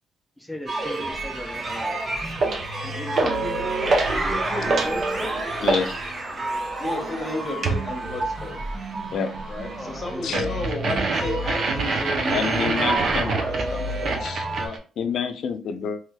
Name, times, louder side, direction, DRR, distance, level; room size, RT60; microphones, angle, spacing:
voice 1, 0.4-2.1 2.8-5.4 9.7-10.6 10.9-11.2, left 1 dB, ahead, 2 dB, 0.5 m, -36 dB
sound 1, 0.7-14.7, right 2 dB, 35° right, 0.9 m, -30 dB
sound 2, 2.4-2.7 3.2-3.5 3.9-4.2 4.5-5.9 7.6-7.9 10.3-14.8, right 3 dB, 60° right, 0.6 m, -25 dB
voice 2, 5.6-6.1 9.1-9.3 10.2-10.4 12.3-13.3 14.2-14.4 15.0-16.0, left 6 dB, 65° left, 9 dB, 0.4 m, -28 dB
voice 3, 6.8-8.6 9.5-14.8, left 2 dB, 30° left, 2 dB, 1.1 m, -33 dB
3.2 x 3.0 x 2.3 m, 0.38 s
cardioid pair, 90°, 0 cm